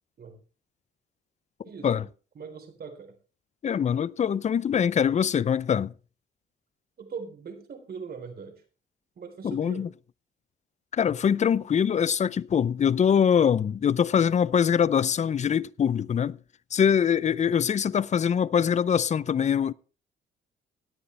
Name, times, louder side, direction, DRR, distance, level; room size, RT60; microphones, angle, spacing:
voice 1, 1.6-2.1 2.3-3.2 7.0-8.5 9.2-9.9, right 5 dB, 50° right, 3.9 m, -41 dB
voice 2, 3.6-5.9 9.4-9.9 10.9-16.4 16.7-19.7, left 8 dB, 35° left, 0.5 m, -23 dB
17.0 x 9.8 x 3.3 m
cardioid pair, 90°, 20 cm